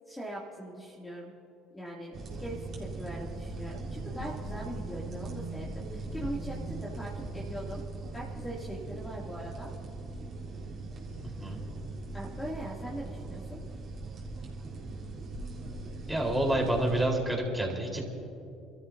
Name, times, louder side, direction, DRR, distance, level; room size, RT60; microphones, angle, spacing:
voice 1, 0.1-1.3 1.7-2.1 2.4-5.7 5.9-7.8 8.1-9.7 12.1-13.6, right 1 dB, 10° left, -5 dB, 2.8 m, -41 dB
sound 1, 2.1-17.0, right 3 dB, 45° right, 3.9 m, -40 dB
voice 2, 16.1-18.1, right 1 dB, 10° right, -1 dB, 4.4 m, -28 dB
29.0 x 13.5 x 2.8 m, 2.6 s
hypercardioid pair, 70°, 0 cm